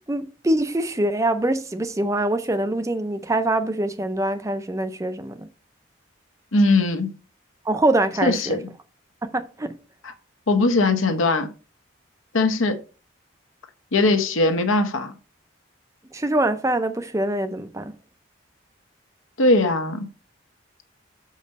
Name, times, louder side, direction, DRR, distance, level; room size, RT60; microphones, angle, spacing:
voice 1, 0.1-5.5 7.7-8.6 9.2-9.8 16.1-18.0, right 1 dB, 15° right, 0.4 m, -24 dB
voice 2, 6.5-7.1 8.2-8.6 10.5-11.5 12.3-12.8 13.9-15.1 19.4-20.1, left 2 dB, 80° left, 1.0 m, -20 dB
6.5 x 5.3 x 4.0 m
head